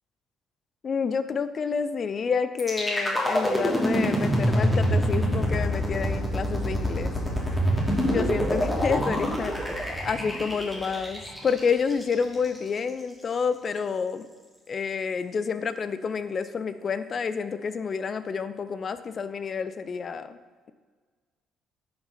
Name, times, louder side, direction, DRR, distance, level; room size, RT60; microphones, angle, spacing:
voice 1, 0.8-7.1 8.0-9.5 10.0-14.3 14.7-20.4, left 6 dB, 45° left, 12 dB, 0.6 m, -29 dB
sound 1, 2.6-12.6, equal, 15° left, 2.8 m, -26 dB
10.5 x 6.4 x 4.1 m, 1.5 s
hypercardioid pair, 50°, 0 cm